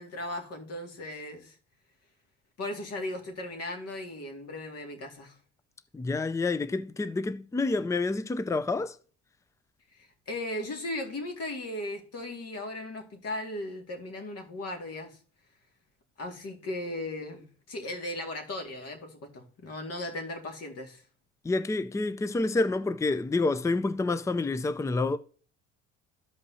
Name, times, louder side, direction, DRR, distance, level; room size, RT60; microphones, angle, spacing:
voice 1, 0.0-1.6 2.6-5.4 9.9-15.2 16.2-21.0, left 1 dB, 45° left, 2.2 m, -37 dB
voice 2, 5.9-9.0 21.4-25.2, left 3 dB, 10° left, 0.5 m, -28 dB
13.5 x 5.3 x 2.8 m
hypercardioid pair, 60°, 33 cm